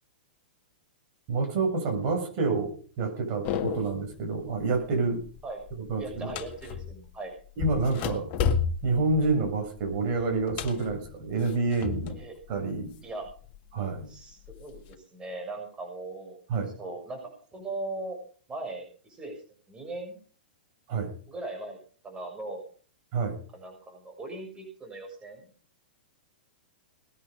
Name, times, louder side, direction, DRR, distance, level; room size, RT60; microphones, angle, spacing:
voice 1, 1.3-5.2 5.9-6.3 7.6-8.3 8.8-12.2 12.5-12.9 13.7-14.1 16.5-16.7 20.9-21.1 23.1-23.4, right 3 dB, 45° right, 4 dB, 7.4 m, -28 dB
sound 1, 3.4-4.1 4.5-4.9 5.2-7.1 7.6-12.3 12.6-13.6 14.1-14.9, left 7 dB, 40° left, 1.9 m, -33 dB
voice 2, 6.0-7.3 12.1-12.3 13.0-13.3 14.1-16.4 16.8-17.2 17.5-18.2 18.5-19.4 19.7-20.2 21.3-21.8 22.0-22.6 23.5-25.4, right 2 dB, 15° right, 3 dB, 6.2 m, -39 dB
20.5 x 10.5 x 5.3 m, 0.42 s
figure-of-eight pair, 110°, 5 cm